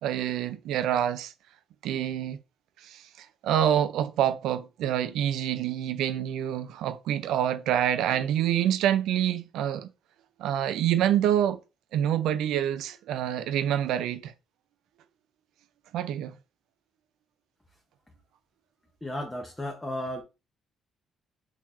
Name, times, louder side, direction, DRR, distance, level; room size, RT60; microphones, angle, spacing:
voice 1, 0.0-1.3 1.8-2.4 2.8-9.9 10.4-11.6 11.9-14.3 15.9-16.3, right 10 dB, 80° right, 0.4 m, -27 dB
voice 2, 19.0-20.2, left 1 dB, 15° left, 0.8 m, -34 dB
3.8 x 2.9 x 2.5 m
supercardioid pair, 65°, 0 cm